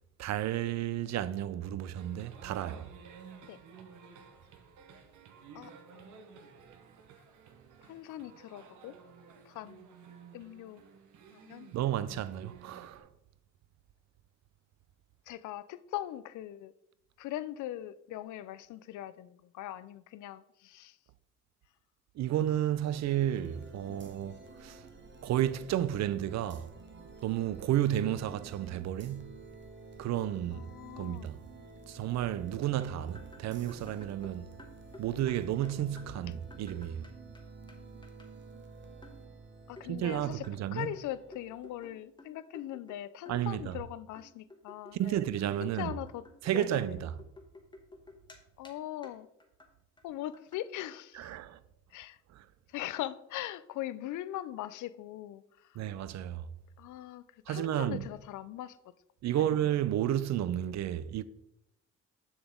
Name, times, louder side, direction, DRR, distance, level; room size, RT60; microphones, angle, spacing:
voice 1, 0.2-2.9 11.7-13.1 22.2-24.8 25.2-26.7 27.2-29.3 30.0-30.7 31.0-31.4 31.9-34.5 35.0-37.0 39.9-40.9 43.3-43.8 45.0-45.9 46.4-47.2 51.1-51.6 52.3-52.4 55.8-56.4 57.5-58.1 59.2-61.2, right 11 dB, 60° right, 0.5 m, -32 dB
sound 1, 1.9-13.0, right 6 dB, 80° right, 1.0 m, -53 dB
voice 2, 5.5-6.4 7.8-8.9 9.5-9.9 10.3-10.9 11.3-11.7 15.3-16.7 17.2-21.0 23.9-24.0 30.5-31.3 39.7-45.2 45.6-46.2 46.5-47.0 48.6-49.3 50.0-51.3 51.9-52.2 52.7-55.8 56.8-58.8 59.4-59.5, left 13 dB, 75° left, 0.5 m, -41 dB
sound 2, 22.8-42.0, right 4 dB, 40° right, 1.1 m, -51 dB
sound 3, 32.8-37.4 37.7-37.8 38.0-38.3 39.0-39.2 39.8-43.0 43.3-43.8 44.2-48.4 48.6-48.7 49.0-49.2 49.4-49.7 50.0-50.1 50.3-50.6, left 2 dB, 15° left, 1.2 m, -53 dB
7.0 x 6.0 x 3.7 m
cardioid pair, 90°, 30 cm